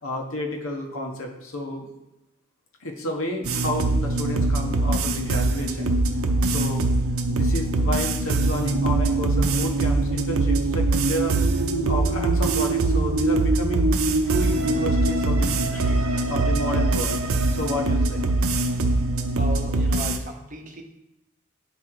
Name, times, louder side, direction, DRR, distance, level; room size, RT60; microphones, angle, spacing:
voice 1, 0.0-1.9 2.8-5.9 6.5-6.8 7.3-17.2 17.5-18.3, left 1 dB, 85° left, 2 dB, 1.3 m, -31 dB
sound 1, 3.4-20.2, right 2 dB, 90° right, 0.6 m, -22 dB
voice 2, 19.4-20.8, equal, 40° right, 2 dB, 0.9 m, -36 dB
9.2 x 3.8 x 4.6 m, 0.92 s
head